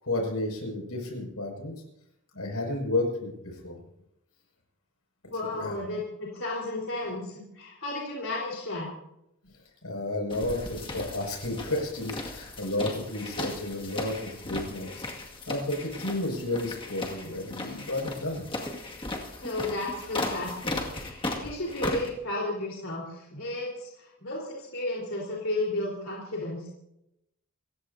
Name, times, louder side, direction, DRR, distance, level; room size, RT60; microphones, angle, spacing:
voice 1, 0.0-1.7 2.3-3.8 5.5-5.8 9.8-15.1 15.5-18.4, left 2 dB, 85° left, 2 dB, 6.2 m, -32 dB
voice 2, 5.3-8.9 19.4-26.7, left 2 dB, 65° left, -3 dB, 4.1 m, -33 dB
sound 1, 10.3-22.1, left 2 dB, 25° left, 2.1 m, -36 dB
28.0 x 16.5 x 2.8 m, 0.82 s
head